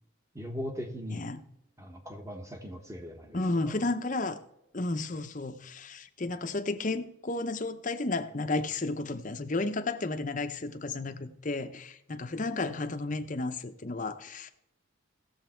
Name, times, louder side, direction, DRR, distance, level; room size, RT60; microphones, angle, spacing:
voice 1, 0.3-1.3 1.8-3.7, equal, 15° right, 4 dB, 1.3 m, -40 dB
voice 2, 3.3-4.4 4.7-14.5, left 2 dB, 35° left, 8 dB, 0.7 m, -32 dB
15.5 x 7.3 x 4.5 m, 0.86 s
head